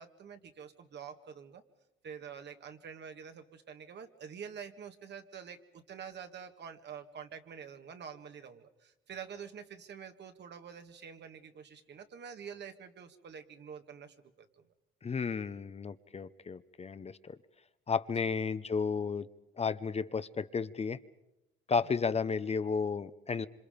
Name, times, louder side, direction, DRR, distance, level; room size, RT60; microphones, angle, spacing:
voice 1, 0.0-1.6 2.0-14.7 21.8-21.9, right 7 dB, 60° right, 7 dB, 1.8 m, -47 dB
voice 2, 15.0-17.4 17.9-19.3 19.6-21.0 21.7-23.5, left 5 dB, 30° left, 13 dB, 0.8 m, -33 dB
26.5 x 26.0 x 5.2 m, 0.92 s
cardioid pair, 90°, 20 cm